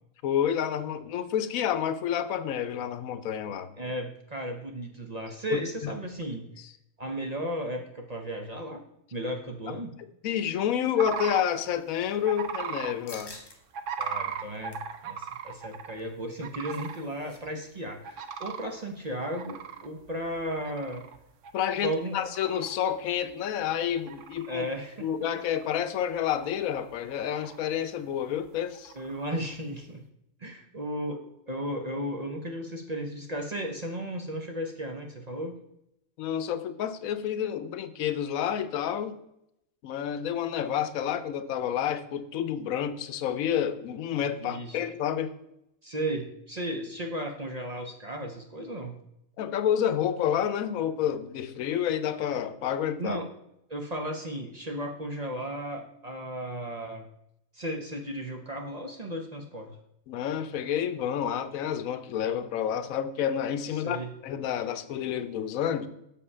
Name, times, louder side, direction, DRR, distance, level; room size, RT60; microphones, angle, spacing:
voice 1, 0.2-3.9 5.5-5.9 9.7-9.8 10.2-13.4 21.5-24.7 25.0-28.9 36.2-39.2 39.8-45.3 49.4-53.2 60.1-65.9, left 9 dB, 85° left, 12 dB, 1.1 m, -29 dB
voice 2, 3.8-6.5 7.0-8.8 9.1-9.9 14.0-14.8 15.0-21.0 21.8-22.2 24.5-25.1 28.9-30.0 30.4-35.5 44.4-44.8 45.8-48.9 53.0-53.3 53.7-57.0 57.5-59.7 63.7-64.1, right 1 dB, 35° right, 3 dB, 0.7 m, -35 dB
sound 1, 11.0-11.4 12.3-12.9 13.7-16.0 16.4-17.0 17.4-17.5 18.0-18.7 19.2-21.2 21.4-21.8 22.2-22.8 23.3-23.4 23.9-24.7 25.2-25.9 26.2-26.8 27.1-27.6 28.7-29.3, right 7 dB, 70° right, 1.0 m, -37 dB
sound 2, 13.1-13.6 14.0-14.1 14.5-14.9 16.2-17.4 17.7-17.8 18.1-18.4, left 2 dB, 20° left, 0.9 m, -48 dB
6.7 x 5.6 x 5.4 m, 0.80 s
omnidirectional pair, 1.4 m